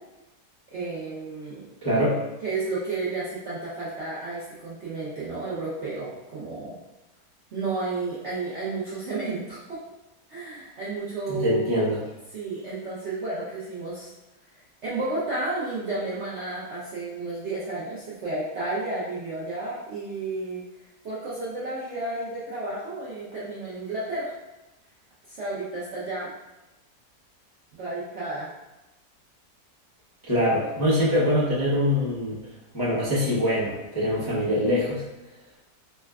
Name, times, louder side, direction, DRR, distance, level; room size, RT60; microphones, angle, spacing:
voice 1, 0.7-1.7 2.4-6.8 7.5-9.8 10.3-11.9 12.3-14.1 14.8-20.6 21.0-24.3 25.3-26.3 27.7-28.5, right 3 dB, 65° right, -9 dB, 0.7 m, -32 dB
voice 2, 1.8-2.2 11.3-12.0 30.3-32.4 32.7-35.0, left 1 dB, 25° left, -10 dB, 0.4 m, -23 dB
4.2 x 2.2 x 2.3 m, 0.98 s
omnidirectional pair, 1.8 m